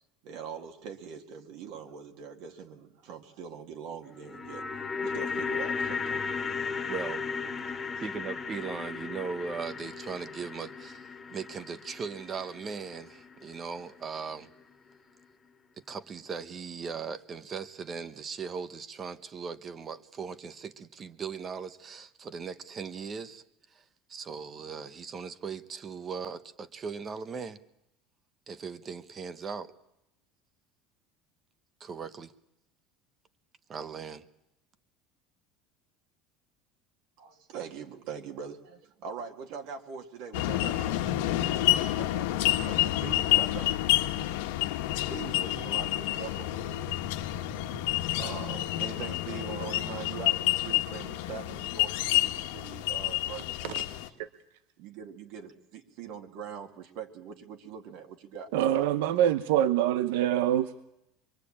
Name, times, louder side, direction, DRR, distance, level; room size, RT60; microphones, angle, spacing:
voice 1, 0.2-4.6 5.0-6.3 6.7-6.8 37.2-43.7 45.1-47.0 47.8-54.3 54.8-58.5, right 6 dB, 60° right, 2.1 m, -43 dB
sound 1, 4.1-14.3 14.6-14.7, left 5 dB, 15° left, 2.1 m, -36 dB
voice 2, 6.9-7.2 8.0-14.5 15.9-23.4 24.1-27.6 28.5-29.7 31.8-32.3 33.7-34.2, right 5 dB, 25° right, 1.0 m, -38 dB
sound 2, 40.3-54.1, left 15 dB, 90° left, 1.4 m, -29 dB
voice 3, 58.5-60.8, right 11 dB, 85° right, 0.9 m, -25 dB
24.5 x 23.5 x 8.7 m
cardioid pair, 160°, 0 cm